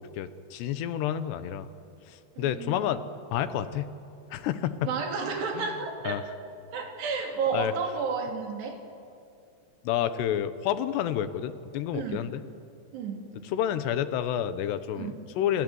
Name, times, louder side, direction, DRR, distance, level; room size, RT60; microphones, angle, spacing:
voice 1, 0.0-1.7 2.1-3.0 3.3-3.9 4.3-4.9 5.5-5.6 6.1-6.2 7.5-7.7 9.8-12.4 13.5-15.6, left 10 dB, 80° left, 12 dB, 3.2 m, -29 dB
voice 2, 2.4-2.9 4.8-6.2 6.7-8.8 11.9-12.3 12.9-13.4 14.9-15.2, right 5 dB, 75° right, 2 dB, 5.2 m, -32 dB
27.5 x 26.5 x 8.0 m, 2.5 s
omnidirectional pair, 4.8 m